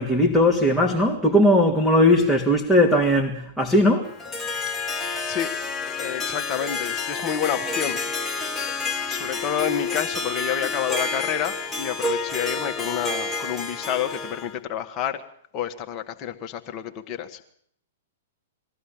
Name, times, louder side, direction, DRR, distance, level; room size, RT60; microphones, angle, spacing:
voice 1, 0.0-4.1, left 1 dB, 5° right, 2.7 m, -18 dB
Harp, 4.0-14.6, left 4 dB, 15° left, 1.8 m, -29 dB
voice 2, 6.0-8.0 9.1-15.2 15.5-17.5, left 9 dB, 30° left, 2.1 m, -29 dB
22.0 x 15.0 x 9.0 m
figure-of-eight pair, 110°, 0 cm